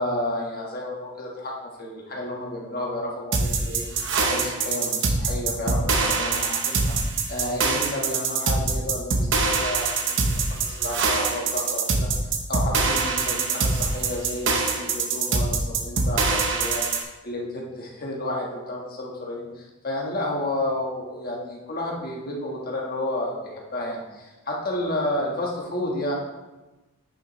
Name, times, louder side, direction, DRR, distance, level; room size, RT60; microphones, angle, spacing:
voice 1, 0.0-1.5 1.8-6.9 7.3-12.1 12.5-26.1, left 1 dB, 40° left, -2 dB, 1.4 m, -31 dB
sound 1, 3.3-17.0, right 4 dB, 55° right, 0.8 m, -24 dB
9.1 x 6.1 x 3.1 m, 1.1 s
head